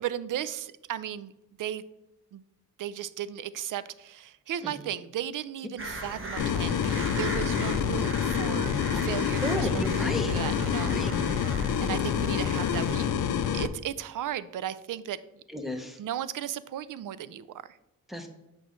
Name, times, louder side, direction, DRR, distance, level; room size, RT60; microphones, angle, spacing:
voice 1, 0.0-1.3 1.6-1.8 2.3-2.4 2.8-11.0 11.8-13.1 13.5-15.2 16.0-17.8, right 10 dB, 60° right, 16 dB, 0.5 m, -35 dB
sound 1, 5.8-13.1, right 1 dB, 35° right, 1.4 m, -39 dB
sound 2, 6.4-13.7, left 8 dB, 55° left, 0.6 m, -27 dB
voice 2, 9.4-10.4 10.9-11.1 15.5-16.0 18.1-18.3, left 1 dB, ahead, 3 dB, 1.0 m, -33 dB
8.0 x 5.3 x 3.1 m, 0.94 s
cardioid pair, 90°, 36 cm